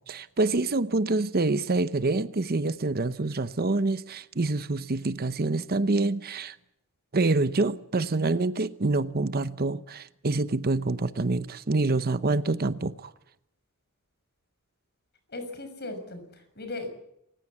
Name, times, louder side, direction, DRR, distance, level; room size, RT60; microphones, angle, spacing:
voice 1, 0.1-6.6 7.1-13.1, right 3 dB, 45° right, 0.8 m, -26 dB
voice 2, 15.3-16.9, left 2 dB, 50° left, 6.3 m, -37 dB
27.5 x 16.0 x 8.4 m
head